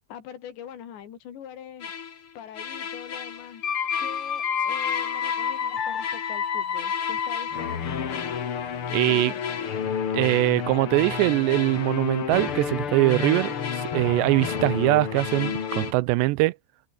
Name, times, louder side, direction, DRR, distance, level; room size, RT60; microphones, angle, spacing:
voice 1, 0.0-1.9 2.4-3.6 4.0-8.3 8.9-9.6, left 9 dB, 85° left, 5.2 m, -43 dB
sound 1, 1.8-2.2 2.6-15.9, left 7 dB, 45° left, 2.1 m, -29 dB
voice 2, 8.9-9.3 10.1-16.6, right 20 dB, 90° right, 2.8 m, -22 dB
omnidirectional pair, 5.0 m